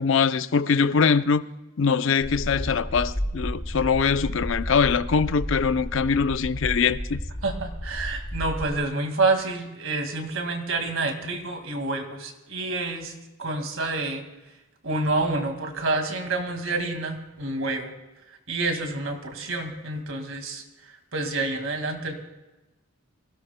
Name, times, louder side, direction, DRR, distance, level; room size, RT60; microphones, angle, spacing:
voice 1, 0.0-1.4 1.8-7.2, left 5 dB, 65° left, 0.5 m, -22 dB
sound 1, 2.2-8.7, equal, 35° left, 2.8 m, -32 dB
voice 2, 7.4-14.2 14.8-17.9 18.5-22.1, right 3 dB, 65° right, 2.1 m, -28 dB
26.0 x 16.5 x 2.2 m
head